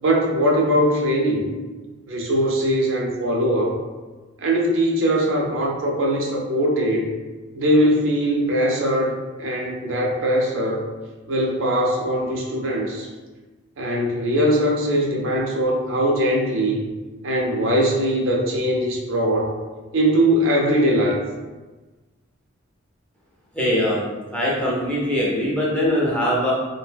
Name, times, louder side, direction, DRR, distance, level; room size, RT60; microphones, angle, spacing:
voice 1, 0.0-1.5 2.1-3.8 4.4-7.1 7.5-10.8 11.3-13.1 13.8-16.8 17.2-19.6 19.9-21.2, equal, 75° right, -2 dB, 0.6 m, -21 dB
voice 2, 23.5-24.0 24.3-26.5, equal, 5° left, -6 dB, 0.6 m, -21 dB
2.5 x 2.2 x 3.3 m, 1.3 s
head